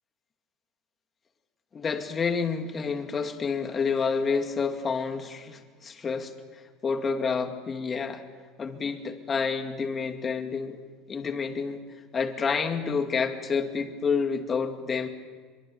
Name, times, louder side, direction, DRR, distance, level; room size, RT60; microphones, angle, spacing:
voice 1, 1.7-8.2 8.6-10.8 11.1-11.8 12.1-15.1, left 5 dB, 25° left, 5 dB, 2.2 m, -29 dB
24.0 x 23.0 x 7.0 m, 1.5 s
supercardioid pair, 135°, 0 cm